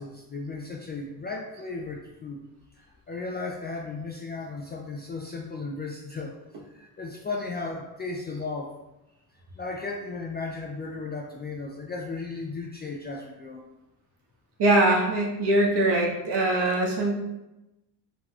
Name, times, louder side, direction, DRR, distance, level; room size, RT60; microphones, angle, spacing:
voice 1, 0.0-2.5 2.7-6.4 6.7-8.7 9.5-13.6, left 3 dB, 25° left, 0 dB, 0.3 m, -35 dB
voice 2, 14.6-17.1, right 1 dB, 55° right, -1 dB, 1.1 m, -22 dB
3.8 x 2.9 x 2.3 m, 0.98 s
hypercardioid pair, 60°, 49 cm